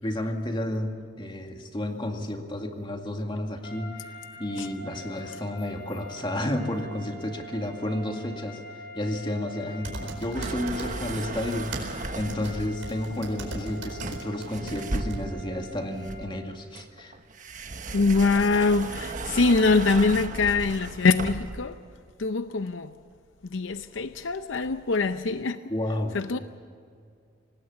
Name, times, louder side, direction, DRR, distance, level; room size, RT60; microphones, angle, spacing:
voice 1, 0.0-17.2 25.7-26.4, left 1 dB, 25° left, 2.2 m, -32 dB
sound 1, 3.6-16.5, right 1 dB, 50° left, 4.1 m, -44 dB
sound 2, 9.8-11.2 11.5-14.8 15.1-15.2, right 2 dB, 90° right, 4.6 m, -38 dB
sound 3, 10.3-12.9 14.0-15.5 16.1-21.6, right 2 dB, 45° right, 1.3 m, -35 dB
voice 2, 17.9-21.8 22.2-22.9 23.5-25.6 26.1-26.4, left 3 dB, 90° left, 0.7 m, -23 dB
25.5 x 19.0 x 7.1 m
head